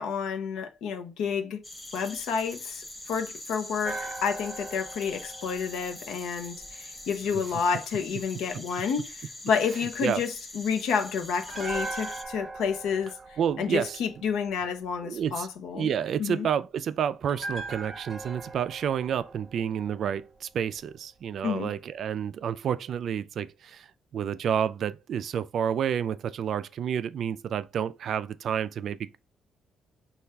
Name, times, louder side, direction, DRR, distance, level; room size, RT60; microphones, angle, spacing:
voice 1, 0.0-1.6 1.9-15.9 16.2-16.5 21.4-21.7, left 6 dB, 90° left, 0.7 m, -30 dB
sound 1, 1.6-12.2, left 1 dB, 10° left, 0.5 m, -43 dB
sound 2, 3.8-7.0 11.4-14.6 17.3-20.5 20.8-20.9, right 3 dB, 10° right, 0.9 m, -40 dB
voice 2, 13.4-14.0 15.0-15.5 15.7-23.9 24.1-29.2, right 8 dB, 55° right, 0.3 m, -29 dB
5.7 x 2.4 x 3.3 m
cardioid pair, 155°, 0 cm